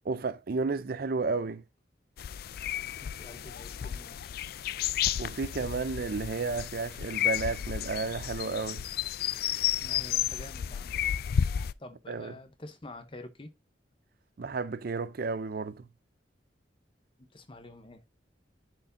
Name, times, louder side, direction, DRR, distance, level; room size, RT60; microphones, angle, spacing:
voice 1, 0.0-1.6 5.2-8.8 12.1-12.3 14.4-15.9, right 4 dB, 55° right, 0.5 m, -32 dB
sound 1, 2.2-11.7, left 10 dB, 55° left, 0.3 m, -32 dB
voice 2, 3.0-4.4 9.8-11.0 11.8-13.5 17.3-18.0, left 2 dB, 30° left, 0.8 m, -47 dB
10.5 x 4.6 x 2.6 m
head